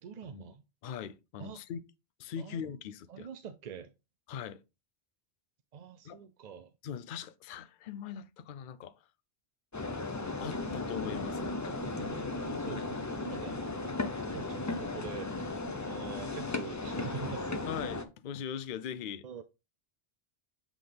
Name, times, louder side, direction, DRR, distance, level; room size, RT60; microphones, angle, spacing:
voice 1, 0.0-0.6 1.4-1.6 2.4-2.8 3.1-3.9 5.7-6.7 11.8-15.5 15.8-17.7 19.2-19.4, right 7 dB, 55° right, 0.5 m, -45 dB
voice 2, 0.8-1.8 2.2-3.3 4.3-4.6 6.0-6.2 6.8-9.0 10.4-11.8 12.7-12.9 17.7-19.3, left 8 dB, 60° left, 0.7 m, -41 dB
sound 1, 9.7-18.0, left 3 dB, 25° left, 0.4 m, -36 dB
7.9 x 3.7 x 3.3 m
omnidirectional pair, 1.1 m